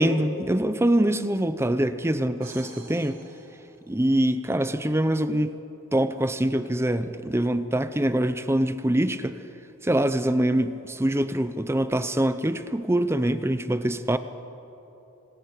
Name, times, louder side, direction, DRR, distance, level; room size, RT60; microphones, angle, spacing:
voice 1, 0.0-3.2 3.9-5.5 5.9-9.4 9.8-14.2, right 1 dB, 10° right, 11 dB, 0.7 m, -24 dB
sound 1, 2.4-4.4, right 4 dB, 85° right, 7.2 m, -48 dB
28.5 x 25.5 x 6.7 m, 3.0 s
head